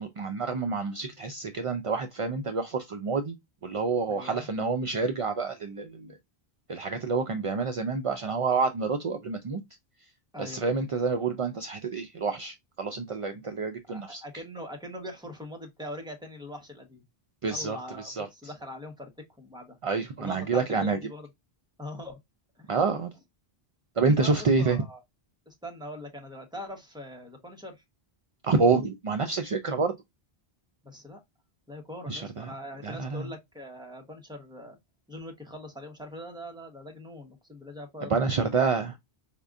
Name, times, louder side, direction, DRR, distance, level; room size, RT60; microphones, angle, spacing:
voice 1, 0.0-3.4 3.6-6.2 6.7-9.6 10.4-14.2 17.4-18.3 19.8-21.0 22.7-23.1 24.0-24.8 28.4-29.9 32.1-32.5 32.8-33.3 38.1-38.9, right 4 dB, 55° right, 0.4 m, -28 dB
voice 2, 4.1-4.5 10.3-10.7 13.9-17.0 17.5-19.1 19.4-19.8 20.2-21.3 21.8-22.2 22.6-22.7 23.9-25.0 25.5-27.8 30.8-31.2 31.7-34.8 35.1-38.6, left 1 dB, 5° right, 0.9 m, -42 dB
5.1 x 2.5 x 2.3 m
omnidirectional pair, 1.0 m